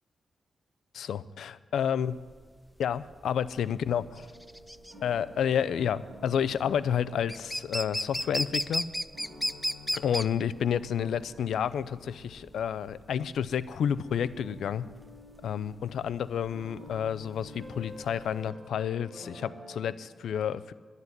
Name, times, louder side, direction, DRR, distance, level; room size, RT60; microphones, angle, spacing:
voice 1, 0.9-2.2 2.8-4.0 5.0-8.8 9.9-14.8 15.4-20.7, left 8 dB, 90° left, 16 dB, 0.5 m, -30 dB
Spotted Woodpecker, 2.1-18.5, equal, ahead, 0.4 m, -35 dB
sound 1, 3.9-19.9, left 1 dB, 25° right, 5.1 m, -51 dB
12.0 x 8.1 x 9.6 m, 1.5 s
cardioid pair, 105°, 0 cm